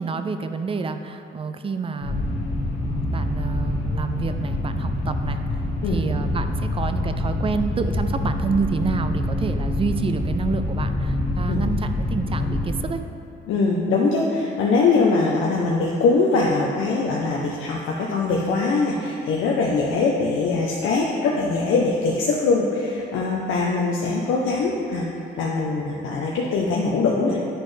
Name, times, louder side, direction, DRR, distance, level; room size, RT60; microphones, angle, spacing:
voice 1, 0.0-2.4 2.9-5.4 5.8-13.0, right 4 dB, 30° right, 9 dB, 0.4 m, -28 dB
sound 1, 2.0-12.7, left 1 dB, 65° left, 1.6 m, -26 dB
voice 2, 13.5-25.1 25.3-27.4, left 3 dB, 80° left, -3 dB, 0.7 m, -22 dB
10.5 x 4.2 x 3.3 m, 2.6 s
cardioid pair, 90°, 20 cm